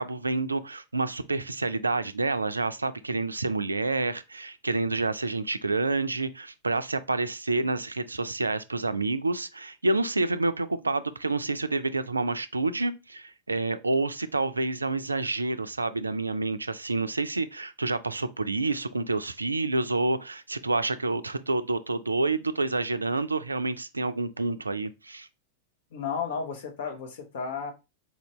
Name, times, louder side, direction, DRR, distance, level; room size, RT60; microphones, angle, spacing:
voice 1, 0.0-25.3, right 3 dB, 80° right, 0.3 m, -28 dB
voice 2, 25.9-27.7, left 6 dB, 60° left, 1.1 m, -33 dB
4.2 x 2.7 x 3.0 m
figure-of-eight pair, 90°, 0 cm